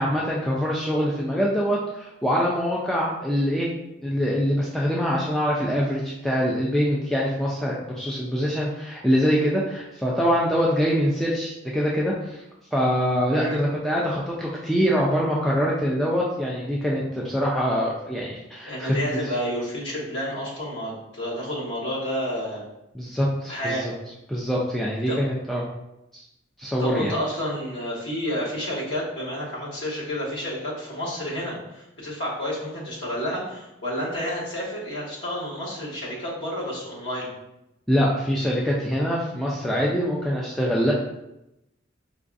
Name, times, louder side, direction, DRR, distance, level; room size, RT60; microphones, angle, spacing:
voice 1, 0.0-3.7 4.0-12.4 12.7-18.9 19.3-19.4 22.9-23.9 24.3-25.6 26.1-26.2 26.6-27.1 37.9-40.9, equal, ahead, -5 dB, 0.3 m, -24 dB
voice 2, 18.6-22.6 23.5-23.8 25.1-25.2 26.8-37.3, equal, 65° left, -7 dB, 1.4 m, -30 dB
4.6 x 2.4 x 2.5 m, 0.88 s
head